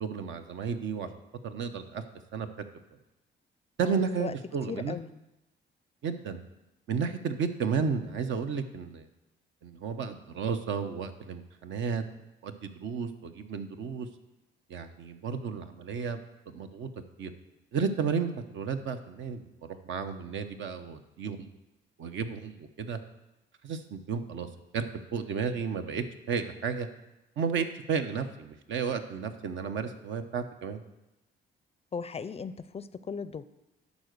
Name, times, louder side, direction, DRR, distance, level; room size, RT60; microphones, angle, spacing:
voice 1, 0.0-1.1 1.4-2.0 2.3-2.5 3.8-5.0 6.0-6.4 6.9-9.1 9.6-12.0 12.4-14.1 14.7-16.9 17.2-17.3 17.7-21.5 22.0-23.0 23.6-24.5 24.7-24.9 25.1-26.9 27.4-30.8, right 6 dB, 70° right, 8 dB, 0.9 m, -33 dB
voice 2, 3.8-4.3 4.7-5.1 31.9-33.4, left 5 dB, 30° left, 15 dB, 0.4 m, -37 dB
11.5 x 4.1 x 6.6 m, 0.95 s
cardioid pair, 90°, 20 cm